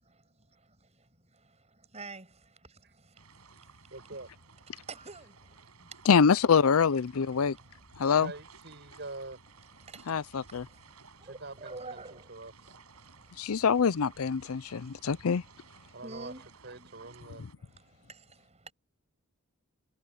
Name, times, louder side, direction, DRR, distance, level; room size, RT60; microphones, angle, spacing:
voice 1, 1.9-2.2 4.9-5.3 11.3-12.2 16.0-16.4 16.7-16.9, right 3 dB, 30° right, 7.7 m, -43 dB
sound 1, 3.2-17.6, right 4 dB, 80° right, 7.5 m, -56 dB
voice 2, 3.9-4.3 8.2-9.4 11.2-12.8 15.9-16.3 16.6-17.5, right 2 dB, 50° right, 8.0 m, -44 dB
voice 3, 6.1-7.6 8.0-8.3 10.1-10.6 13.4-15.4, left 6 dB, 70° left, 0.5 m, -25 dB
head